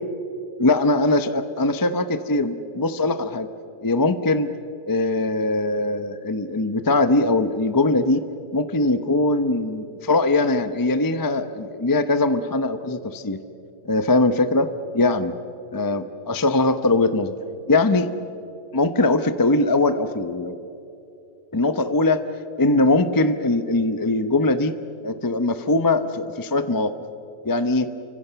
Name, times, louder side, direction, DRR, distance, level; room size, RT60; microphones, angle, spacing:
voice 1, 0.6-3.5 3.8-4.5 4.9-8.2 8.5-13.4 13.8-14.7 14.9-15.3 15.7-17.3 17.7-18.1 18.7-20.6 21.5-22.2 22.6-24.7 25.0-26.9 27.4-27.9, left 2 dB, 25° left, 10 dB, 0.4 m, -21 dB
29.5 x 25.0 x 6.9 m, 2.7 s
omnidirectional pair, 1.9 m